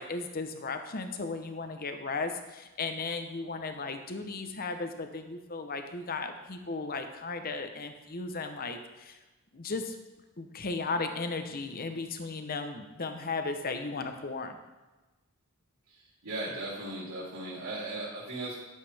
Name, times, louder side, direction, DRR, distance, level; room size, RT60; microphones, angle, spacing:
voice 1, 0.0-9.2 9.5-10.0 10.4-14.6, left 3 dB, 45° left, 7 dB, 0.8 m, -35 dB
voice 2, 16.2-18.6, right 2 dB, 85° right, -7 dB, 3.0 m, -37 dB
11.5 x 7.4 x 3.4 m, 1.2 s
head